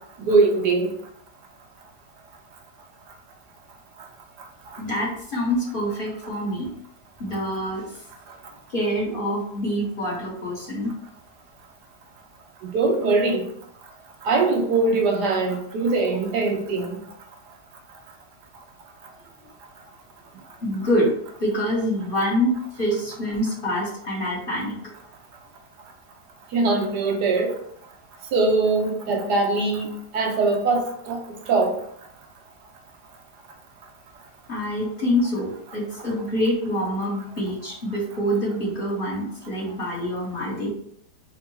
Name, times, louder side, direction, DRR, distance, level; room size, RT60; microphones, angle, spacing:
voice 1, 0.3-0.9 12.6-13.4 14.2-17.0 26.5-27.5 28.3-31.2 31.5-31.7, right 3 dB, 80° right, 2 dB, 1.4 m, -21 dB
voice 2, 4.8-6.7 7.2-7.9 8.7-10.9 20.6-21.1 21.4-24.8 34.5-40.7, equal, 35° left, -5 dB, 1.5 m, -26 dB
4.5 x 2.5 x 4.5 m, 0.69 s
omnidirectional pair, 1.8 m